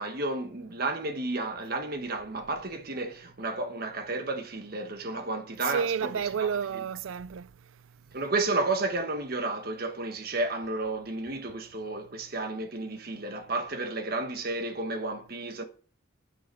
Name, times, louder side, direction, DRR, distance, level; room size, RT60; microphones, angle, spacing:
voice 1, 0.0-6.1 6.4-6.5 8.1-15.6, right 2 dB, 45° right, 1.4 m, -32 dB
voice 2, 5.6-7.5, right 7 dB, 75° right, 0.4 m, -30 dB
9.6 x 9.3 x 4.6 m
head